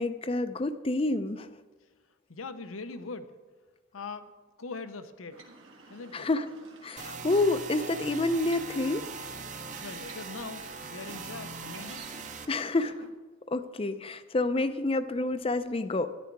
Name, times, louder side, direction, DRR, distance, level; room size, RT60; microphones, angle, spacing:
voice 1, 0.0-1.5 6.1-6.5 6.8-9.0 12.5-12.9 13.5-16.1, left 2 dB, 30° left, 12 dB, 0.5 m, -28 dB
voice 2, 2.3-3.3 3.9-4.3 4.6-5.4 5.9-6.3 9.8-12.0, left 4 dB, 90° left, 10 dB, 0.8 m, -41 dB
sound 1, 5.3-13.1, right 3 dB, 75° right, 1.7 m, -51 dB
sound 2, 7.0-12.5, right 4 dB, 40° right, 0.9 m, -41 dB
13.5 x 10.5 x 4.7 m, 1.3 s
head